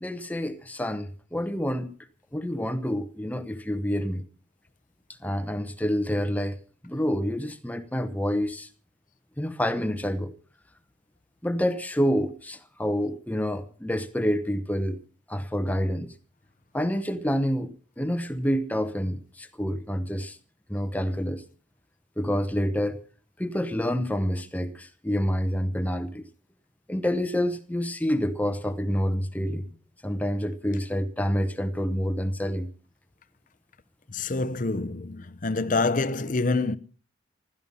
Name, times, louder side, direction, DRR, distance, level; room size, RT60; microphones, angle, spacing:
voice 1, 0.0-1.9 2.3-4.2 5.2-6.6 6.8-8.7 9.4-10.3 11.4-15.0 15.3-16.1 16.7-20.4 20.7-21.4 22.2-23.0 23.4-26.3 26.9-29.7 30.0-32.7, equal, 10° left, 0.9 m, -28 dB
voice 2, 34.1-36.8, left 3 dB, 40° left, 0.8 m, -26 dB
16.0 x 13.0 x 5.6 m
head